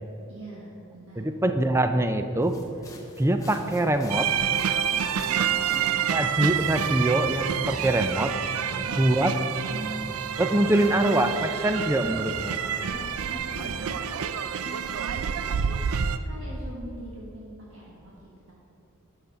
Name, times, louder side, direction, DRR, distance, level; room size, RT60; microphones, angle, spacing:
voice 1, 0.3-1.3 4.9-5.9 8.6-9.0 12.8-15.9 16.2-18.1 18.5-18.6, right 1 dB, 65° right, -5 dB, 1.4 m, -43 dB
voice 2, 1.2-2.6 3.2-4.3 6.1-8.3 9.0-9.3 9.7-12.6, right 1 dB, 10° right, 8 dB, 0.4 m, -24 dB
sound 1, 2.4-13.8, left 1 dB, 15° left, 1.0 m, -46 dB
sound 2, 4.1-16.2, right 8 dB, 85° right, 0.4 m, -28 dB
9.3 x 6.6 x 5.5 m, 2.9 s
head